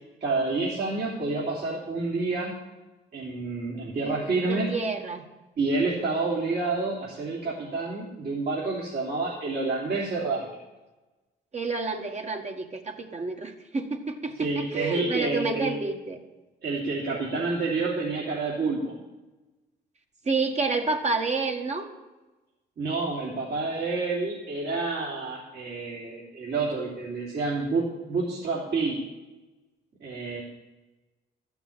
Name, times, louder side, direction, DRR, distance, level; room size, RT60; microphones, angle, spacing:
voice 1, 0.2-2.6 3.1-4.7 5.6-10.5 14.4-15.7 16.6-18.9 22.8-29.0 30.0-30.4, right 3 dB, 55° right, -5 dB, 3.1 m, -28 dB
voice 2, 4.0-5.2 11.5-16.2 20.2-21.9, right 3 dB, 35° right, 4 dB, 1.7 m, -29 dB
12.5 x 7.0 x 8.7 m, 1.1 s
cardioid pair, 90°, 20 cm